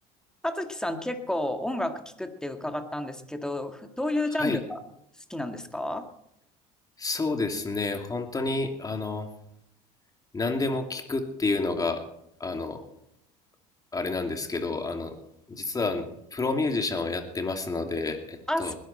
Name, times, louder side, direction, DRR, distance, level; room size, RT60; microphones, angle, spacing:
voice 1, 0.4-4.8 5.3-6.1 18.5-18.7, left 1 dB, 5° left, 6 dB, 1.9 m, -31 dB
voice 2, 7.0-9.3 10.3-12.0 12.4-12.8 13.9-15.1 15.5-18.8, left 3 dB, 20° left, 4 dB, 2.7 m, -29 dB
20.0 x 11.5 x 4.4 m, 0.75 s
supercardioid pair, 90°, 17 cm